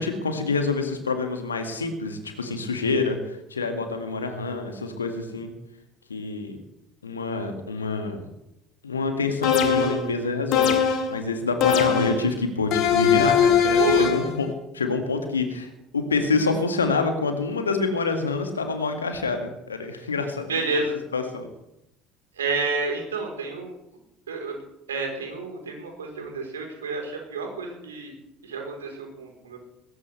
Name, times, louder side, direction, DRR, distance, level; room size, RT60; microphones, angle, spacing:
voice 1, 0.0-5.5 6.1-6.6 7.0-8.2 8.8-14.5 14.7-20.8 21.1-21.5 26.2-26.3, left 4 dB, 80° left, 6 dB, 2.0 m, -27 dB
sound 1, 9.4-10.1 10.5-11.1 11.6-12.2 12.7-14.3, left 7 dB, 55° left, 2.0 m, -21 dB
voice 2, 13.8-14.2 20.5-21.0 22.4-23.7 24.3-24.5 24.9-28.1 28.4-29.6, right 4 dB, 75° right, 2 dB, 4.0 m, -29 dB
20.0 x 17.0 x 3.4 m, 0.87 s
figure-of-eight pair, 60°, 0 cm